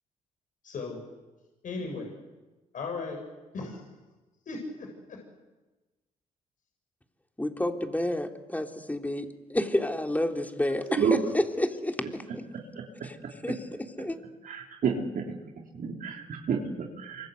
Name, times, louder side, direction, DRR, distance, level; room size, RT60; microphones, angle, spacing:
voice 1, 0.6-1.0 1.6-2.1 2.7-3.2 3.5-3.8 4.5-5.2, left 3 dB, 55° left, 2 dB, 7.0 m, -36 dB
voice 2, 7.4-12.4 13.0-14.2, left 1 dB, 10° left, 4 dB, 3.6 m, -30 dB
voice 3, 14.5-15.2 15.8-17.3, right 6 dB, 60° right, 1 dB, 3.5 m, -29 dB
27.0 x 25.0 x 8.1 m, 1.2 s
hypercardioid pair, 50°, 16 cm